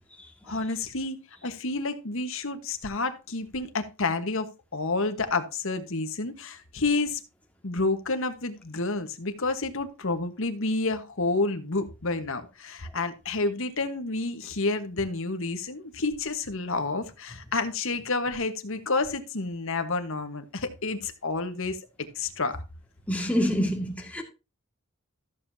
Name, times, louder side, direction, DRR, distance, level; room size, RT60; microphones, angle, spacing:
voice 1, 0.4-7.2 7.6-22.6, left 3 dB, 60° left, 1.3 m, -29 dB
voice 2, 23.1-24.2, equal, 5° left, 1.9 m, -26 dB
14.0 x 7.3 x 2.7 m
head